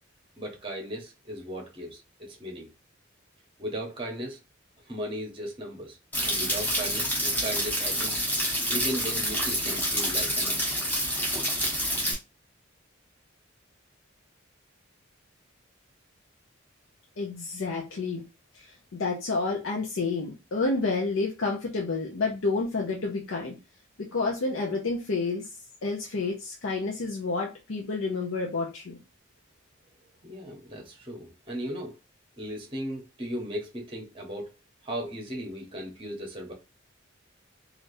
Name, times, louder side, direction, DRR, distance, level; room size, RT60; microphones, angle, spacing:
voice 1, 0.4-2.7 3.6-4.4 4.9-6.0 6.2-8.2 8.7-10.6 30.2-31.9 32.4-34.5 34.8-36.5, equal, 25° right, 0.8 m, -36 dB
sound 1, 6.1-12.1, equal, 10° left, 1.0 m, -28 dB
voice 2, 17.2-18.2 18.5-23.6 24.0-25.5 25.8-29.0, left 3 dB, 75° left, 0.6 m, -29 dB
3.2 x 2.4 x 2.6 m
head